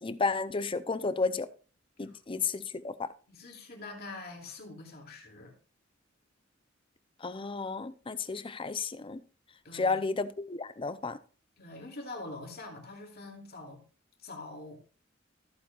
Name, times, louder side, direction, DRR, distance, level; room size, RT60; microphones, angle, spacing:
voice 1, 0.0-1.5 2.0-3.1 7.2-9.2 9.7-11.2, left 4 dB, 25° left, 0.5 m, -32 dB
voice 2, 3.3-5.5 9.6-10.0 11.6-13.8 14.2-14.8, left 2 dB, 50° left, 2.7 m, -44 dB
14.0 x 8.3 x 2.4 m
head